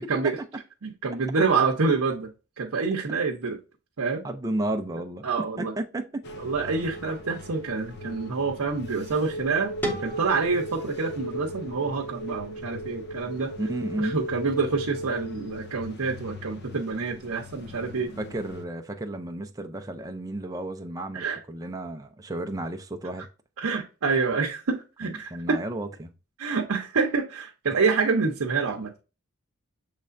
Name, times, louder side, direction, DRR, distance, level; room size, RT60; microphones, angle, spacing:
voice 1, 0.8-3.6 4.0-4.2 5.2-5.7 6.4-13.5 14.0-18.1 21.1-21.4 23.6-25.6 26.4-29.0, right 4 dB, 75° right, 0.7 m, -27 dB
voice 2, 4.2-5.2 5.6-6.2 13.6-14.2 18.2-23.3 25.0-26.1, right 1 dB, 15° right, 0.4 m, -32 dB
sound 1, 6.2-18.6, equal, 50° left, 0.6 m, -38 dB
sound 2, 9.8-12.7, equal, 10° left, 0.9 m, -37 dB
6.6 x 3.2 x 2.5 m
head